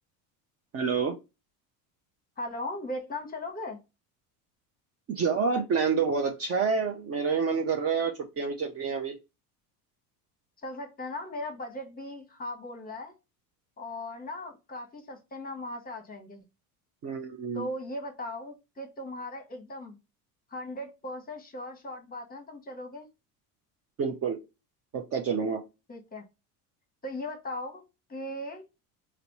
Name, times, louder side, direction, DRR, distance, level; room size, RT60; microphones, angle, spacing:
voice 1, 0.7-1.1 5.1-9.1 17.0-17.7 24.0-24.4 24.9-25.6, right 5 dB, 35° right, 0.5 m, -28 dB
voice 2, 2.4-3.8 10.6-13.1 13.8-16.4 17.5-20.0 20.5-23.1 25.9-26.2 27.0-27.8 28.1-28.6, left 1 dB, 20° left, 0.9 m, -38 dB
4.0 x 2.0 x 2.9 m
supercardioid pair, 95°, 45 cm